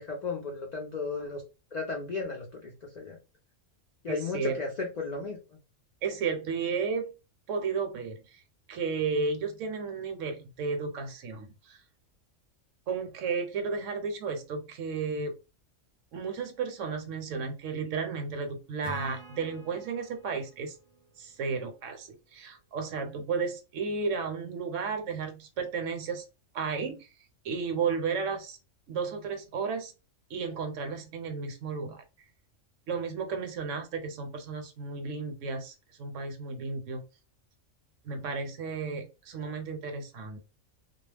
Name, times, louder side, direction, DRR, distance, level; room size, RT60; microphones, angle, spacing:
voice 1, 0.0-1.4 1.7-3.2 4.0-5.4, left 4 dB, 65° left, 0.4 m, -34 dB
voice 2, 4.1-4.6 6.0-7.1 7.5-8.4 8.7-11.8 12.9-15.3 16.1-20.7 21.2-26.2 26.5-27.1 27.4-28.6 28.9-29.9 30.3-32.0 32.9-37.0 38.0-40.4, right 5 dB, 70° right, 0.9 m, -33 dB
Acoustic guitar / Strum, 18.8-22.3, right 2 dB, 45° right, 0.6 m, -49 dB
2.3 x 2.0 x 3.2 m
omnidirectional pair, 1.4 m